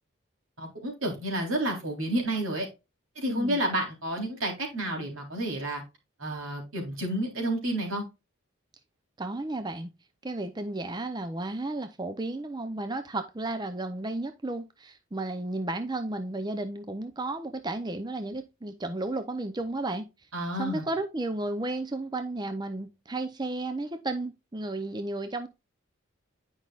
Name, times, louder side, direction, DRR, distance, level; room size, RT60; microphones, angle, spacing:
voice 1, 0.6-2.7 3.2-5.8 6.2-8.0 20.3-20.8, right 1 dB, 85° right, 3.6 m, -30 dB
voice 2, 3.3-3.6 9.2-9.9 10.2-20.1 20.6-25.5, right 2 dB, 20° right, 0.6 m, -33 dB
10.0 x 5.5 x 2.4 m
head